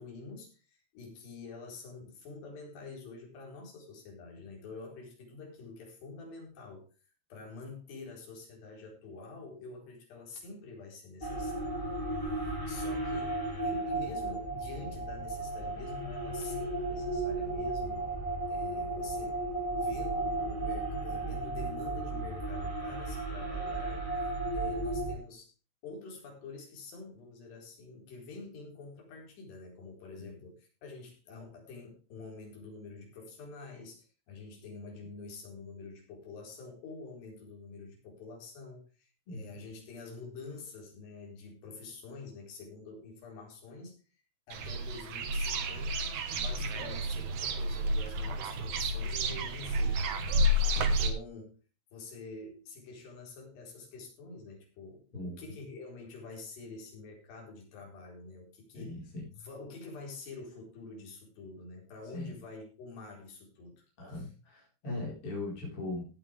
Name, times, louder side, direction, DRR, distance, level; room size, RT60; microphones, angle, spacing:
voice 1, 0.0-6.9 7.3-12.1 12.4-18.1 18.5-19.4 19.7-24.1 24.5-25.5 25.8-44.0 44.5-51.6 51.9-59.0 59.3-64.3, left 3 dB, 70° left, 0 dB, 6.4 m, -47 dB
sound 1, 11.2-25.2, right 2 dB, 5° left, 2.6 m, -34 dB
voice 2, 39.3-39.7 55.1-55.4 58.7-59.3 62.1-62.4 64.0-66.1, left 2 dB, 30° left, -4 dB, 5.3 m, -39 dB
sound 2, 44.5-51.1, equal, 60° right, 2.1 m, -30 dB
16.5 x 9.1 x 3.4 m, 0.34 s
omnidirectional pair, 5.1 m